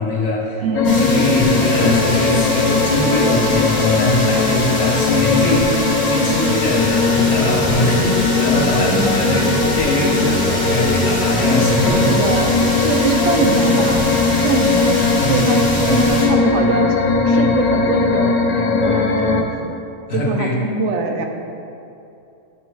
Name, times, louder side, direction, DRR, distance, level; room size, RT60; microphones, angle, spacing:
voice 1, 0.0-0.6 0.9-12.2 15.2-15.5 15.8-15.9 20.1-20.6, left 1 dB, 55° left, -3 dB, 1.3 m, -21 dB
voice 2, 0.6-1.0 8.9-9.3 12.1-17.0 17.3-19.8 20.1-21.3, right 3 dB, 65° right, 3 dB, 0.9 m, -23 dB
sound 1, 0.7-19.4, left 4 dB, 70° left, 0.4 m, -18 dB
sound 2, 0.8-16.3, equal, 35° left, 1.8 m, -26 dB
sound 3, 6.4-15.7, right 2 dB, 40° right, 0.9 m, -35 dB
8.2 x 3.0 x 4.7 m, 2.7 s
omnidirectional pair, 1.3 m